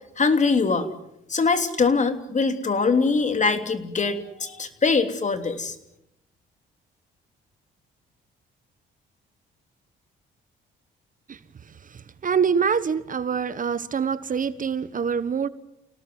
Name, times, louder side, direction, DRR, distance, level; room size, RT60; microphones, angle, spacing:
voice 1, 0.2-0.9 1.3-5.7, left 4 dB, 35° left, 3.3 m, -22 dB
voice 2, 11.9-15.5, right 6 dB, 40° right, 1.3 m, -25 dB
29.0 x 18.5 x 9.6 m
cardioid pair, 90°, 20 cm